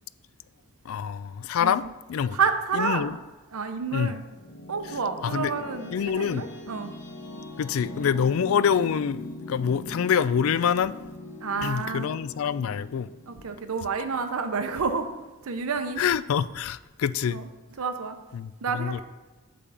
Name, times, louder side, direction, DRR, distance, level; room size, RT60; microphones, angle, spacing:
voice 1, 0.9-1.8 2.1-2.4 2.7-3.2 3.9-4.1 5.2-5.5 5.9-6.5 7.6-10.9 11.6-13.1 16.0-17.4 18.3-19.0, left 7 dB, 75° left, 0.3 m, -26 dB
voice 2, 1.6-1.9 2.3-3.2 3.5-4.2 4.7-6.9 11.4-12.2 13.3-15.1 15.4-16.0 17.3-17.4 17.8-18.2 18.6-19.0, right 5 dB, 85° right, 0.7 m, -29 dB
sound 1, 4.2-14.9, left 1 dB, 50° left, 1.2 m, -41 dB
8.4 x 3.7 x 6.9 m
head